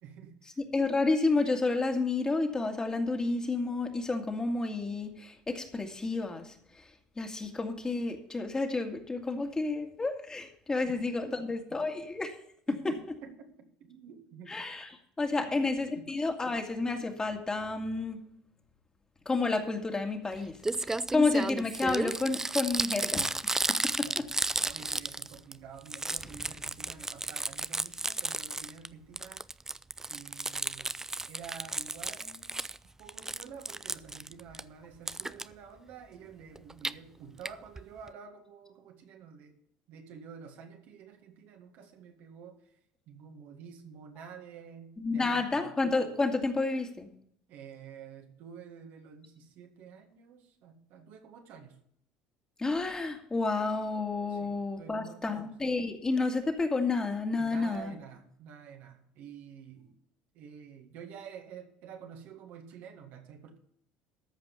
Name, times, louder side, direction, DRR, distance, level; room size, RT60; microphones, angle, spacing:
voice 1, 0.0-0.6 10.8-10.9 11.3-11.6 12.7-14.6 15.4-16.1 24.0-24.3 24.6-29.5 30.1-31.0 31.3-32.6 33.0-39.6 39.9-42.6 43.1-45.7 47.5-51.8 54.3-55.5 57.4-59.9 60.3-63.6, right 7 dB, 65° right, 4 dB, 1.9 m, -49 dB
voice 2, 0.6-6.5 7.2-12.3 12.7-12.9 14.5-14.9 15.2-18.2 19.3-24.3 45.0-47.1 52.6-57.9, left 3 dB, 20° left, 3 dB, 2.1 m, -30 dB
Crumpling crinkling, 20.3-20.4 20.6-25.5 25.8-28.9 29.2-32.8 33.1-34.6 35.1-35.4 36.6-36.9 37.4-37.5 37.8-37.9 38.1-38.2, right 2 dB, 15° right, 0.5 m, -33 dB
13.5 x 5.2 x 8.1 m, 0.69 s
hypercardioid pair, 75°, 3 cm